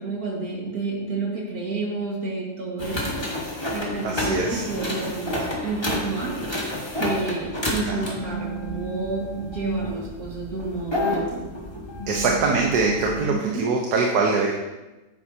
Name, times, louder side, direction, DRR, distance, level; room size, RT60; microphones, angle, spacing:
voice 1, 0.0-3.2 3.7-6.4 7.0-11.5 13.3-13.7, right 3 dB, 65° right, -2 dB, 2.3 m, -30 dB
sound 1, 2.8-13.3, left 1 dB, 15° left, 1.4 m, -30 dB
voice 2, 4.0-4.6 7.9-8.2 12.1-14.5, right 3 dB, 85° right, 0 dB, 1.5 m, -23 dB
9.8 x 9.0 x 2.8 m, 1.1 s
omnidirectional pair, 1.7 m